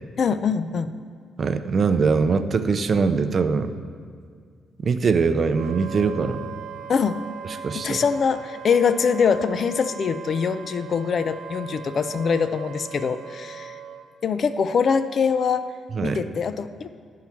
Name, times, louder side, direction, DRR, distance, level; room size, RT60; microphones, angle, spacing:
voice 1, 0.2-0.9 6.9-7.2 7.7-13.7 14.2-15.7 16.0-16.9, left 6 dB, 50° left, 12 dB, 0.4 m, -23 dB
voice 2, 1.4-3.8 4.8-6.4 7.6-8.0 15.9-16.2, right 5 dB, 45° right, 10 dB, 0.5 m, -22 dB
Wind instrument woodwind instrument, 5.5-14.0, right 7 dB, 85° right, 0.8 m, -39 dB
12.0 x 4.6 x 5.8 m, 2.1 s
cardioid pair, 90°, 0 cm